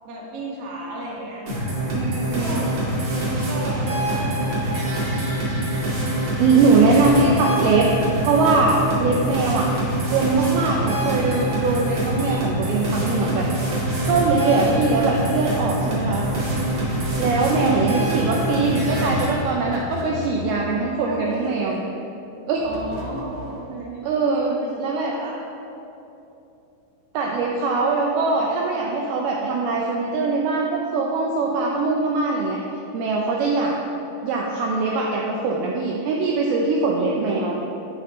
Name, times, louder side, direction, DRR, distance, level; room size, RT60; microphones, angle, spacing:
voice 1, 0.0-1.5 2.4-2.7 3.5-5.5 6.6-7.1 14.3-14.9 17.7-18.0 21.1-21.8 22.6-25.4 33.4-34.0 36.9-37.3, right 1 dB, 60° right, -4 dB, 1.6 m, -34 dB
sound 1, 1.5-19.3, right 1 dB, 40° right, 2.1 m, -24 dB
voice 2, 1.9-2.6 6.4-7.9 8.2-9.7 10.1-13.5 14.0-16.3 17.2-21.8 22.5-22.6 24.0-25.1 27.1-32.6 32.9-33.7 34.2-37.6, right 3 dB, 85° right, -1 dB, 2.2 m, -22 dB
sound 2, 16.1-17.7 18.6-21.2 22.6-23.7, left 3 dB, 70° left, 2.0 m, -36 dB
11.0 x 9.6 x 3.2 m, 2.9 s
omnidirectional pair, 5.3 m